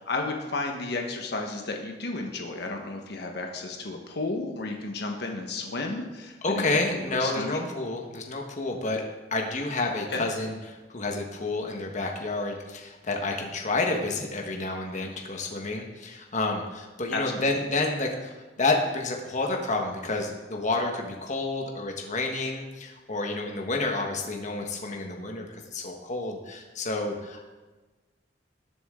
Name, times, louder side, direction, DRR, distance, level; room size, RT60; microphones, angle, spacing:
voice 1, 0.0-7.7 10.1-10.2 17.1-17.4, left 3 dB, 60° left, 2 dB, 1.4 m, -33 dB
voice 2, 6.4-9.0 9.3-27.5, left 2 dB, 40° left, 1 dB, 1.4 m, -30 dB
19.0 x 7.3 x 3.8 m, 1.2 s
head